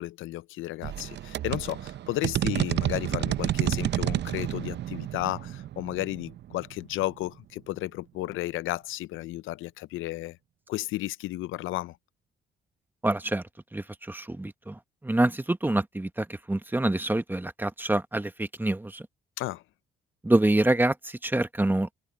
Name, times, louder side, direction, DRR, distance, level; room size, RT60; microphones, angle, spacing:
voice 1, 0.0-10.4 10.7-12.0 19.4-19.6, left 16 dB, 85° left, 0.5 m, -33 dB
sound 1, 0.8-7.3, right 12 dB, 60° right, 0.6 m, -30 dB
voice 2, 13.0-13.4 13.7-19.0 20.2-21.9, right 1 dB, 10° right, 1.3 m, -26 dB
cardioid pair, 90°, 20 cm